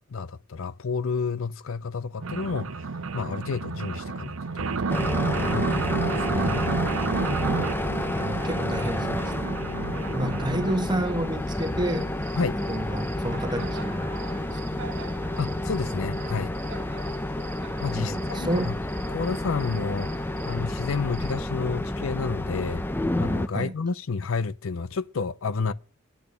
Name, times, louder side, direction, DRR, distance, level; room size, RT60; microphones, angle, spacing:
voice 1, 0.0-7.0 12.4-12.6 15.4-16.5 17.8-18.8 19.1-22.9 23.2-25.7, left 4 dB, 70° left, 0.5 m, -31 dB
sound 1, 2.2-10.7 11.3-11.4 11.7-11.8 12.1-12.2 12.5-12.6 12.9-13.0 13.6-13.7 14.0-14.1 14.4-14.5 14.8-14.9 15.2-15.3, right 4 dB, 75° right, 0.8 m, -30 dB
sound 2, 4.9-23.5, left 1 dB, 10° left, 0.6 m, -30 dB
voice 2, 8.1-9.5 10.1-12.2 12.7-14.8 17.9-18.8 23.5-23.7, right 1 dB, 20° right, 1.4 m, -30 dB
Cricket, 11.4-21.4, right 7 dB, 60° right, 1.2 m, -46 dB
10.5 x 9.1 x 6.6 m
head